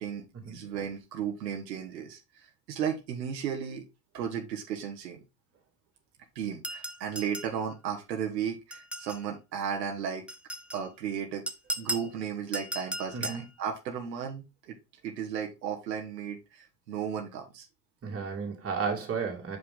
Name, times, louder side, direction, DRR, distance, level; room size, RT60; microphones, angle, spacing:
voice 1, 0.0-3.8 4.1-5.2 6.3-10.2 10.7-11.4 11.8-14.8 15.0-17.7, right 8 dB, 90° right, 1.4 m, -35 dB
sound 1, 6.6-7.6 8.7-9.3 10.3-10.8 11.5-12.1 12.5-13.5, right 1 dB, 5° right, 0.4 m, -36 dB
voice 2, 18.0-19.6, right 5 dB, 30° right, 2.5 m, -33 dB
6.2 x 5.1 x 3.6 m
hypercardioid pair, 90°, 48 cm